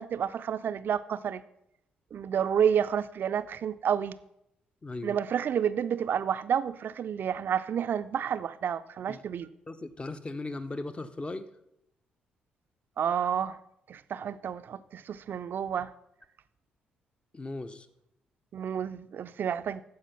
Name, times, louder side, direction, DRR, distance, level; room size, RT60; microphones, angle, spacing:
voice 1, 0.0-1.4 2.1-4.2 5.0-9.5 13.0-13.6 13.9-15.9 18.5-19.8, right 8 dB, 50° right, 12 dB, 0.5 m, -30 dB
voice 2, 4.8-5.2 9.1-9.2 9.7-11.5 17.3-17.9, left 2 dB, 25° left, 11 dB, 0.8 m, -37 dB
14.0 x 5.1 x 5.7 m, 0.79 s
figure-of-eight pair, 40°, 4 cm